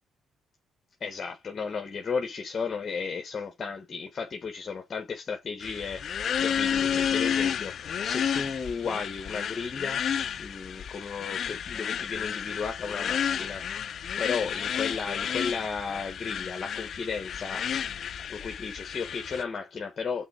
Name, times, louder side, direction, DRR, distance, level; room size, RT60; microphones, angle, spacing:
voice 1, 1.0-13.7 14.2-17.7 18.3-20.2, left 5 dB, 40° left, 1.2 m, -34 dB
sound 1, 5.6-19.4, left 8 dB, 55° left, 0.5 m, -31 dB
6.1 x 3.8 x 4.3 m
cardioid pair, 110°, 0 cm